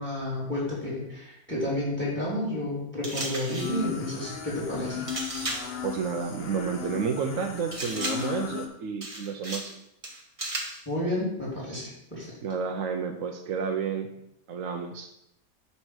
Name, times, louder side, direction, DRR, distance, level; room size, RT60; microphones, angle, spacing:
voice 1, 0.0-5.1 10.8-12.3, left 1 dB, 5° left, -5 dB, 3.2 m, -31 dB
sound 1, 3.0-3.8 5.1-5.8 7.7-8.4 9.0-9.8 10.0-10.8, right 1 dB, 25° right, 1.3 m, -35 dB
sound 2, 3.6-8.7, left 7 dB, 45° left, 1.1 m, -36 dB
voice 2, 5.8-9.8 12.4-14.1 14.5-15.1, right 6 dB, 65° right, 4 dB, 1.1 m, -31 dB
9.7 x 4.3 x 6.3 m, 0.80 s
omnidirectional pair, 1.5 m